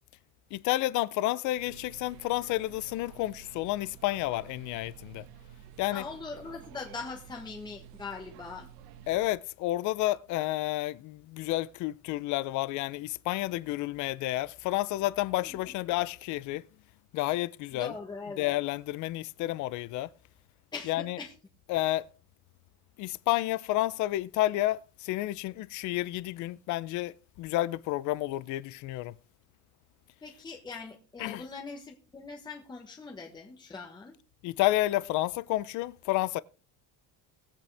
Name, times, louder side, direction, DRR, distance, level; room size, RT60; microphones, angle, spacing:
voice 1, 0.5-5.3 5.8-6.0 9.1-16.6 17.1-17.9 18.4-20.1 20.9-21.2 21.7-22.1 23.0-29.2 31.2-31.4 34.4-36.4, left 17 dB, 50° left, 0.5 m, -30 dB
sound 1, 1.6-9.3, right 10 dB, 65° right, 1.4 m, -51 dB
voice 2, 5.9-8.7 15.4-15.6 17.7-18.5 20.7-21.3 30.2-34.1, left 4 dB, 10° left, 1.3 m, -41 dB
19.5 x 8.5 x 3.4 m
cardioid pair, 175°, 39 cm